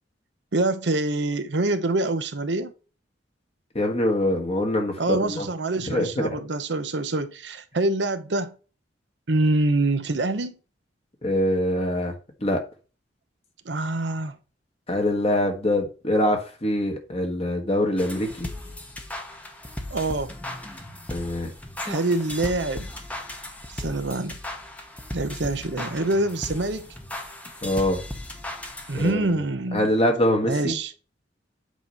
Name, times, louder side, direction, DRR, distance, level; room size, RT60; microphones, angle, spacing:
voice 1, 0.5-2.7 5.0-8.5 9.3-10.6 13.6-14.4 19.9-20.3 21.8-22.9 23.7-24.4 25.1-26.9 28.9-29.9 30.4-30.9, right 2 dB, 70° right, 0.8 m, -25 dB
voice 2, 3.7-5.5 5.8-6.4 11.2-12.1 12.4-12.6 14.9-18.5 21.1-21.5 27.6-28.0 28.9-29.3 29.7-30.7, left 1 dB, 35° left, 1.4 m, -24 dB
sound 1, 18.0-29.3, left 1 dB, 10° left, 1.0 m, -37 dB
8.2 x 3.0 x 5.5 m
head